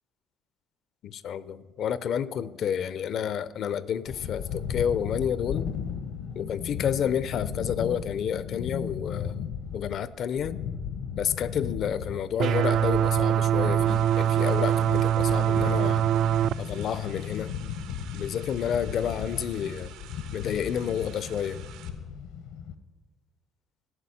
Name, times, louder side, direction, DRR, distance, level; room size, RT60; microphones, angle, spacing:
voice 1, 1.0-5.7 6.3-9.5 9.7-10.6 11.2-16.1 16.6-17.5 18.1-19.9 20.3-21.7, left 8 dB, 45° left, 17 dB, 0.5 m, -30 dB
sound 1, 4.1-22.7, left 7 dB, 75° left, 1.0 m, -36 dB
sound 2, 12.4-16.5, right 10 dB, 50° right, 0.3 m, -23 dB
sound 3, 13.9-21.9, right 10 dB, 85° right, 1.5 m, -49 dB
14.0 x 6.1 x 9.9 m, 1.3 s
cardioid pair, 150°, 0 cm